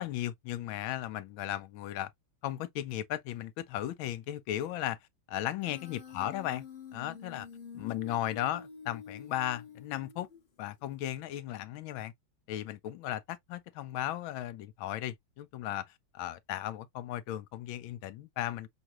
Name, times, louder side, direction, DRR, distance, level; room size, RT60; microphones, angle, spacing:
voice 1, 0.0-2.1 2.4-5.0 5.3-6.6 6.9-7.5 7.7-10.3 10.6-12.1 12.5-15.9 16.1-18.7, left 13 dB, 80° left, 1.4 m, -36 dB
Human voice, 5.6-10.6, left 6 dB, 35° left, 0.9 m, -48 dB
6.3 x 2.4 x 3.0 m
omnidirectional pair, 2.2 m